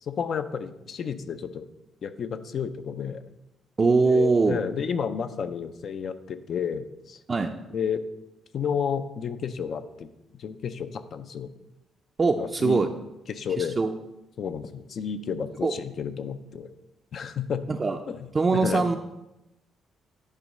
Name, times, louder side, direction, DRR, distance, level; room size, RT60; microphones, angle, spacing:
voice 1, 0.0-1.7 2.0-3.2 4.0-7.2 7.7-8.0 8.5-10.1 10.3-11.5 12.4-12.8 13.3-13.8 14.4-16.7 17.1-17.6 18.1-18.2 18.5-18.9, left 7 dB, 55° left, 10 dB, 0.6 m, -31 dB
voice 2, 3.8-4.6 7.3-7.5 12.2-12.9 13.6-13.9 15.6-15.7 17.7-18.0 18.3-19.0, right 4 dB, 35° right, 3 dB, 0.5 m, -22 dB
10.0 x 3.6 x 5.3 m, 0.93 s
cardioid pair, 90°, 0 cm